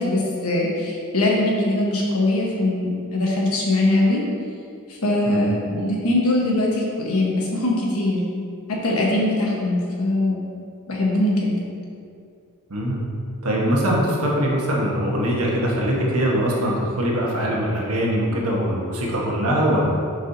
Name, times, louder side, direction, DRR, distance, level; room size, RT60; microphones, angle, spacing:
voice 1, 0.0-4.2 4.9-8.4 8.8-10.4 10.9-11.6, left 1 dB, 80° left, -3 dB, 1.3 m, -21 dB
voice 2, 12.7-13.0 13.4-19.9, equal, 85° right, -3 dB, 1.3 m, -22 dB
8.1 x 4.8 x 2.7 m, 2.3 s
head